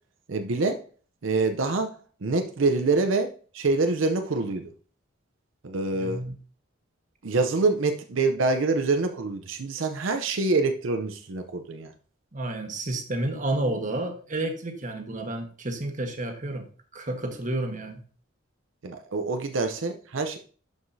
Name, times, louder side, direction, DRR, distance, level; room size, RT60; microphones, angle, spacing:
voice 1, 0.3-0.8 1.2-1.9 2.2-4.6 5.6-6.2 7.2-11.9 18.8-20.4, right 3 dB, 85° right, 6 dB, 0.7 m, -26 dB
voice 2, 6.0-6.3 12.3-16.6 16.9-18.0, right 1 dB, 40° right, 4 dB, 1.3 m, -30 dB
11.5 x 4.9 x 2.7 m, 0.41 s
head